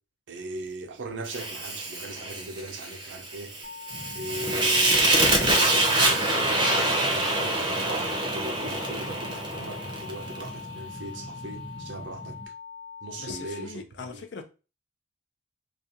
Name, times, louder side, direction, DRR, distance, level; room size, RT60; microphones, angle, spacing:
voice 1, 0.3-3.5 4.1-12.4 13.0-13.7 14.1-14.2, right 2 dB, 85° right, 0.5 m, -39 dB
Fire, 1.3-10.5, right 2 dB, 25° right, 0.6 m, -25 dB
sound 1, 3.6-13.6, left 6 dB, 80° left, 1.2 m, -43 dB
sound 2, 3.9-12.5, right 1 dB, 50° left, 1.0 m, -43 dB
voice 2, 13.2-14.4, left 4 dB, 65° left, 0.5 m, -40 dB
2.4 x 2.3 x 2.7 m
head